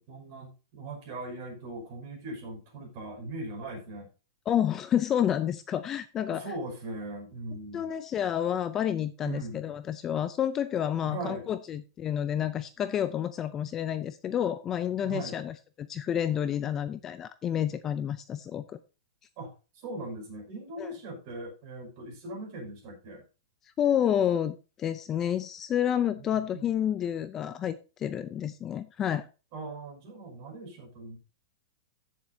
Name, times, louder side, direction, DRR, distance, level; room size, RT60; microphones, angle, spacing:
voice 1, 0.0-4.1 6.3-8.0 9.2-9.6 11.0-11.5 15.0-15.4 19.4-23.2 26.2-26.7 29.5-31.2, right 2 dB, 35° right, 0 dB, 5.7 m, -40 dB
voice 2, 4.5-6.4 7.7-18.8 20.8-20.9 23.8-29.3, left 10 dB, 15° left, 12 dB, 0.4 m, -29 dB
15.5 x 7.3 x 2.7 m, 0.32 s
supercardioid pair, 175°, 2 cm